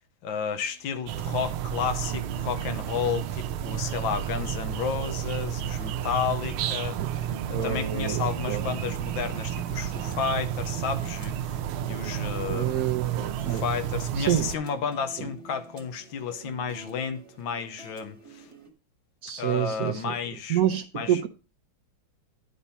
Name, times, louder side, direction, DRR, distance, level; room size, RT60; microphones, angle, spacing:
voice 1, 0.2-7.2 7.5-11.6 11.8-12.9 13.4-18.5 19.4-20.6 20.9-21.2, left 7 dB, 75° left, 1.6 m, -32 dB
sound 1, 0.5-18.7, right 4 dB, 20° right, 1.2 m, -47 dB
sound 2, 1.1-14.6, right 10 dB, 85° right, 1.4 m, -31 dB
voice 2, 7.5-8.7 12.5-13.6 14.2-14.5 15.2-15.3 19.2-20.1 20.5-21.3, right 11 dB, 70° right, 0.8 m, -27 dB
10.0 x 4.3 x 5.5 m
omnidirectional pair, 2.2 m